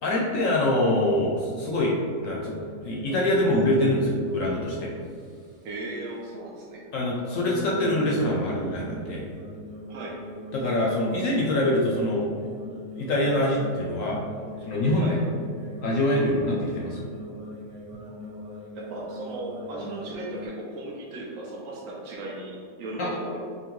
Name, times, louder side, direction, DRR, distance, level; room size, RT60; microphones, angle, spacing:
voice 1, 0.0-2.0 2.2-4.9 6.9-9.3 10.5-12.3 12.9-14.2 14.6-15.2 15.8-17.1 23.0-23.1, left 1 dB, 65° left, -3 dB, 0.9 m, -24 dB
sound 1, 2.2-5.8 7.2-20.5, left 2 dB, 35° right, 1.0 m, -41 dB
voice 2, 5.6-6.8 9.9-10.2 15.0-15.2 18.0-18.2 18.7-23.4, right 2 dB, 65° right, -4 dB, 0.9 m, -36 dB
5.5 x 2.2 x 3.0 m, 2.2 s
omnidirectional pair, 1.7 m